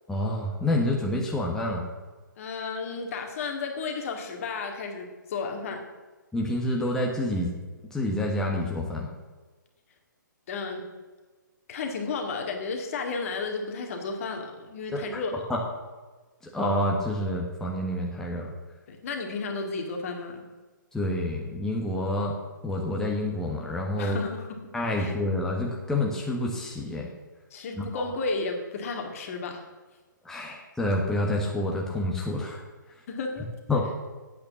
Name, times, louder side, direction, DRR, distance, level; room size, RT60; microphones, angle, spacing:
voice 1, 0.1-1.8 6.3-7.5 7.9-9.1 14.9-15.0 15.5-15.6 16.5-18.5 20.9-22.3 22.6-24.2 24.7-27.1 27.8-28.0 30.2-32.6 33.7-33.9, left 1 dB, 5° left, -2 dB, 1.4 m, -28 dB
voice 2, 2.4-5.8 10.5-10.8 11.7-15.3 18.9-20.4 24.0-24.5 25.0-25.2 27.5-29.6 30.4-30.5 33.1-33.8, left 4 dB, 45° left, 3 dB, 2.2 m, -33 dB
8.8 x 8.6 x 7.1 m, 1.3 s
figure-of-eight pair, 130°, 11 cm